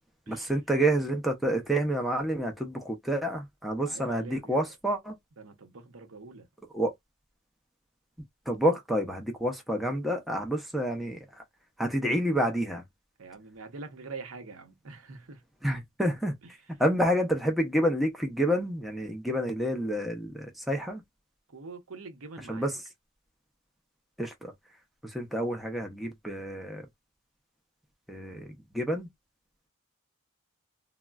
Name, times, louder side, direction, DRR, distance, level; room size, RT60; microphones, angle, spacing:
voice 1, 0.3-5.2 6.7-6.9 8.5-11.2 11.8-12.8 15.6-16.3 16.8-21.0 22.5-22.7 24.2-24.5 25.0-26.8 28.1-28.5 28.7-29.1, equal, ahead, 0.5 m, -28 dB
voice 2, 3.9-4.7 5.4-6.5 13.2-15.4 21.5-22.7, right 4 dB, 65° right, 0.7 m, -44 dB
3.6 x 2.0 x 2.3 m
head